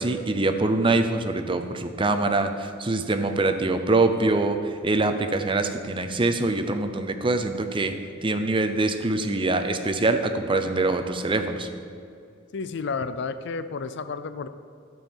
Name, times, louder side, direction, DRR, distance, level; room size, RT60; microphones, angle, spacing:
voice 1, 0.0-7.9 8.2-11.7, right 2 dB, 25° right, 7 dB, 0.6 m, -24 dB
voice 2, 12.5-14.5, left 4 dB, 60° left, 12 dB, 0.5 m, -31 dB
13.5 x 4.6 x 7.2 m, 2.5 s
head